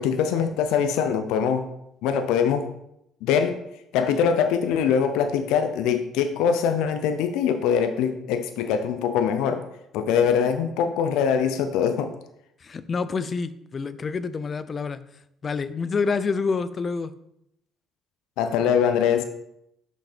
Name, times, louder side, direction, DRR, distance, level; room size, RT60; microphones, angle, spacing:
voice 1, 0.0-1.7 2.0-2.7 3.2-3.6 3.9-9.6 9.9-12.1 18.4-19.2, left 7 dB, 85° left, 8 dB, 0.6 m, -23 dB
voice 2, 12.6-15.0 15.4-17.1, left 4 dB, 40° left, 14 dB, 0.5 m, -27 dB
6.2 x 5.2 x 4.3 m, 0.78 s
supercardioid pair, 85°, 0 cm